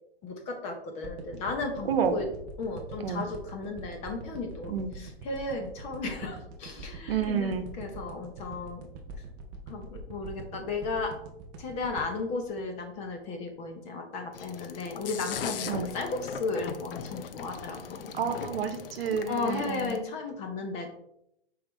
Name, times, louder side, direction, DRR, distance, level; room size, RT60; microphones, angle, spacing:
voice 1, 0.2-2.2 2.6-8.8 9.7-11.1 11.6-18.1 19.3-20.9, left 3 dB, 20° left, 4 dB, 0.8 m, -35 dB
sound 1, 1.0-13.4 13.8-13.9, right 3 dB, 15° right, 0.4 m, -43 dB
voice 2, 1.9-2.2 3.0-3.2 4.7-4.9 7.1-7.7 15.7-15.9 18.1-19.9, right 7 dB, 65° right, 8 dB, 1.0 m, -29 dB
sound 2, 14.3-20.0, left 7 dB, 60° left, 0.7 m, -39 dB
7.2 x 4.8 x 3.1 m, 0.77 s
hypercardioid pair, 155°, 31 cm